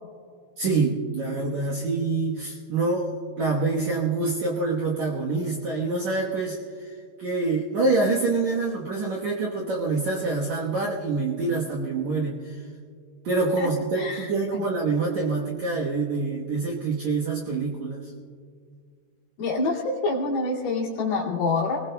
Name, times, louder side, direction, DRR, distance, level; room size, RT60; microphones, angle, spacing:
voice 1, 0.6-6.9 7.2-12.6 13.2-18.1, right 3 dB, 65° right, -3 dB, 1.8 m, -26 dB
voice 2, 14.0-14.3 19.4-21.8, left 3 dB, 65° left, -4 dB, 4.2 m, -26 dB
30.0 x 20.0 x 2.2 m, 2.1 s
omnidirectional pair, 4.9 m